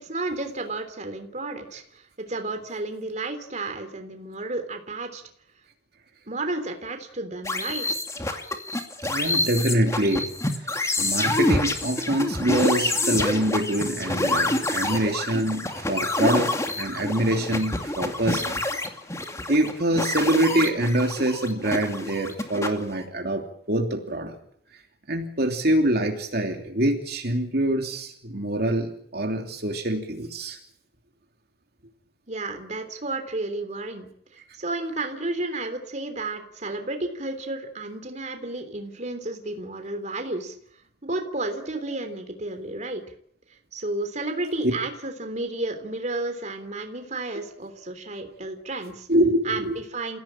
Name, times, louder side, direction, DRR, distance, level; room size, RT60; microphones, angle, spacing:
voice 1, 0.0-5.2 6.3-7.9 32.3-40.5 41.0-43.0 43.7-49.1 49.4-50.2, right 2 dB, 40° right, 6 dB, 3.4 m, -32 dB
sound 1, 7.4-23.0, left 2 dB, 15° left, 2.4 m, -27 dB
voice 2, 9.0-10.3 10.5-10.7 11.0-18.7 19.5-24.4 24.7-24.8 25.1-30.6 49.1-49.7, right 1 dB, 60° right, 2 dB, 3.0 m, -25 dB
29.0 x 16.5 x 8.9 m, 0.67 s
head